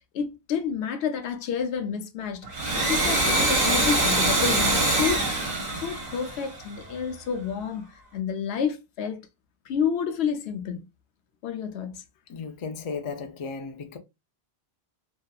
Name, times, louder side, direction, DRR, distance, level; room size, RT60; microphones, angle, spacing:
voice 1, 0.1-9.2 9.7-10.9 11.4-12.0, left 7 dB, 85° left, 0.8 m, -30 dB
Domestic sounds home sounds, 2.4-6.9, right 2 dB, 50° right, 0.7 m, -24 dB
voice 2, 12.3-14.0, left 5 dB, 55° left, 0.3 m, -35 dB
2.6 x 2.3 x 2.3 m
omnidirectional pair, 1.1 m